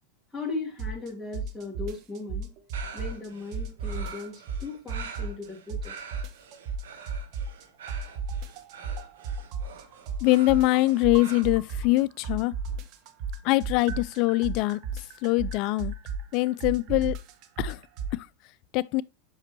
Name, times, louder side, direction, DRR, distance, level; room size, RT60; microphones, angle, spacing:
voice 1, 0.3-2.5 2.9-6.0, left 3 dB, ahead, 2.6 m, -37 dB
sound 1, 0.8-1.1 1.3-3.3 3.5-5.4 5.7-7.6 7.9-12.0 12.2-18.1, right 4 dB, 50° right, 1.1 m, -33 dB
sound 2, 2.7-11.4, right 6 dB, 85° right, 1.7 m, -45 dB
voice 2, 10.2-12.5 13.4-15.9 16.3-17.2 17.6-17.8 18.1-18.3 18.7-19.0, left 19 dB, 50° left, 0.3 m, -23 dB
8.0 x 6.1 x 2.8 m
supercardioid pair, 120°, 0 cm